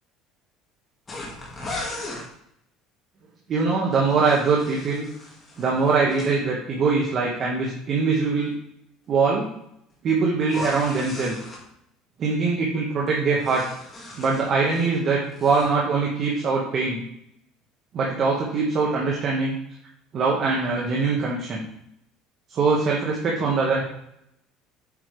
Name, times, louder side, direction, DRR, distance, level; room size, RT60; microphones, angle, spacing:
sound 1, 1.1-2.3 3.9-6.3 10.4-11.6 13.1-14.9 15.2-15.7, left 2 dB, 20° left, 2.1 m, -37 dB
voice 1, 3.5-5.1 5.6-8.5 9.1-9.5 10.0-11.4 12.2-13.6 14.2-17.0 17.9-19.6 20.1-21.6 22.5-23.8, right 4 dB, 35° right, -3 dB, 1.5 m, -22 dB
8.7 x 5.7 x 3.4 m, 0.75 s
cardioid pair, 155°, 0 cm